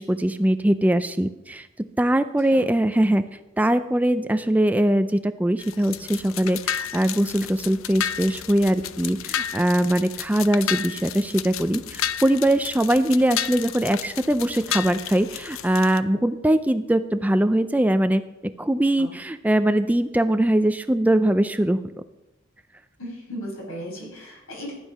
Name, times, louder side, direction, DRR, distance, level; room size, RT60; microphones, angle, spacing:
voice 1, 0.0-3.2 3.6-21.8, right 1 dB, 5° right, 10 dB, 0.4 m, -22 dB
sound 1, 5.6-16.0, left 10 dB, 70° left, 0.5 m, -32 dB
voice 2, 23.0-24.8, equal, 90° left, -2 dB, 6.0 m, -36 dB
14.5 x 9.8 x 5.6 m, 0.96 s
head